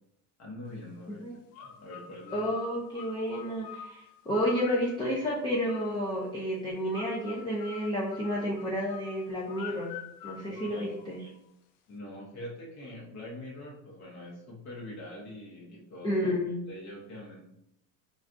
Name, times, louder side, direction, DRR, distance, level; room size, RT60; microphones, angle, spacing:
voice 1, 0.4-1.3 1.5-2.4 10.4-10.9 11.9-16.4 16.7-17.4, left 1 dB, 45° left, -4 dB, 0.9 m, -44 dB
sound 1, 1.5-6.3 6.9-11.4, left 9 dB, 65° left, 0.5 m, -46 dB
voice 2, 2.3-9.9 10.2-11.2 16.0-16.5, equal, 10° left, -4 dB, 0.4 m, -31 dB
3.3 x 2.4 x 2.5 m, 0.80 s
supercardioid pair, 120°, 38 cm